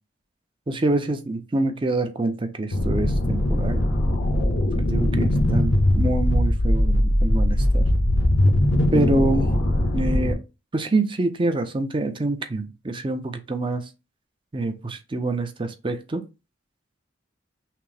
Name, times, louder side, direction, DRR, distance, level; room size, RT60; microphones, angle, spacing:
voice 1, 0.7-3.8 4.7-7.9 8.9-9.5 9.9-10.4 10.7-13.9 14.5-16.2, right 2 dB, 25° right, 0.5 m, -26 dB
sound 1, 2.7-10.3, left 1 dB, 80° left, 0.8 m, -20 dB
5.8 x 2.0 x 3.3 m
head